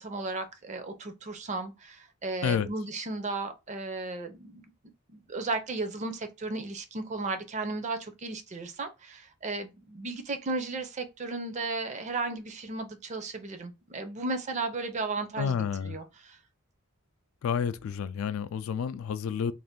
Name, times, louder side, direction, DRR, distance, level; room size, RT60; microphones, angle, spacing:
voice 1, 0.0-4.6 5.1-15.6 15.8-16.4, right 3 dB, 35° right, 0.4 m, -35 dB
voice 2, 15.4-16.0 17.4-19.5, left 7 dB, 70° left, 0.3 m, -30 dB
2.6 x 2.4 x 3.5 m
head